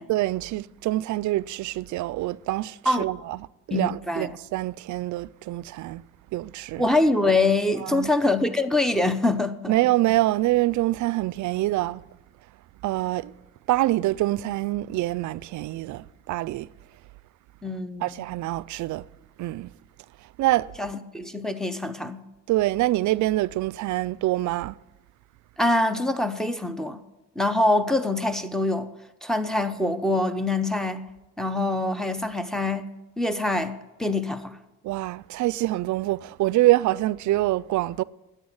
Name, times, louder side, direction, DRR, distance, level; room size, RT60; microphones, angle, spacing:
voice 1, 0.1-3.4 3.7-6.0 6.3-6.9 7.8-8.1 9.7-12.0 12.8-13.3 13.7-16.7 18.0-19.0 19.4-19.7 20.4-20.7 22.5-24.7 34.8-38.0, right 17 dB, 75° right, 0.4 m, -25 dB
voice 2, 3.7-4.3 6.8-9.8 17.6-18.2 20.8-22.2 25.6-27.0 27.4-28.9 29.2-31.1 31.4-34.6, left 2 dB, ahead, 0.9 m, -24 dB
10.5 x 8.2 x 8.8 m
cardioid pair, 90°, 30 cm